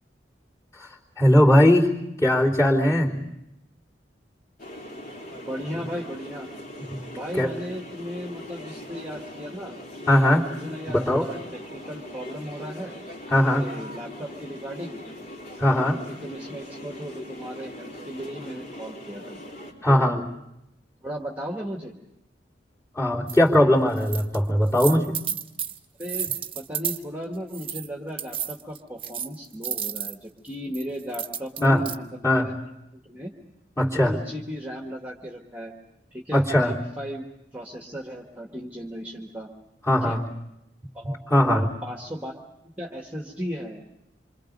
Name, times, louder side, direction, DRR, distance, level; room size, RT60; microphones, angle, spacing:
voice 1, 1.2-1.9 2.2-3.3 5.7-5.8 7.3-7.5 10.1-10.4 10.9-11.3 13.3-13.7 15.6-16.0 19.8-20.2 23.0-25.2 31.6-31.8 32.2-32.5 33.8-34.2 36.3-36.8 39.8-40.2 41.0-41.7, left 1 dB, 15° left, -5 dB, 3.5 m, -20 dB
sound 1, 4.6-19.7, left 1 dB, 55° left, 4.2 m, -41 dB
voice 2, 5.4-6.5 7.1-9.8 10.0-12.9 13.3-15.0 15.8-19.4 19.9-20.2 21.0-21.9 26.0-32.5 32.9-33.3 33.9-35.7 36.1-37.2 37.5-39.5 40.0-40.2 40.9-42.3 42.8-43.8, equal, 10° right, 0 dB, 1.7 m, -36 dB
sound 2, 23.3-23.4 24.0-24.4 24.7-27.0 27.5-27.9 28.2-30.2 30.7-32.0, right 9 dB, 30° right, 1.1 m, -31 dB
27.5 x 25.0 x 5.3 m, 0.83 s
head